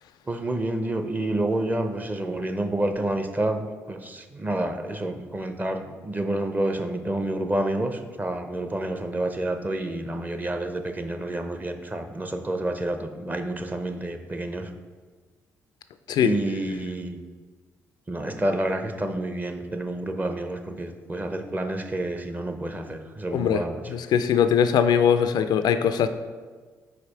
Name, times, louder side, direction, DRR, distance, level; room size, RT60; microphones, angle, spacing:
voice 1, 0.3-14.7 16.2-17.2 18.1-23.8, right 1 dB, 20° right, 6 dB, 0.7 m, -29 dB
voice 2, 23.3-23.6 23.9-26.1, left 8 dB, 60° left, 10 dB, 0.3 m, -21 dB
4.9 x 4.2 x 4.7 m, 1.4 s
hypercardioid pair, 45°, 8 cm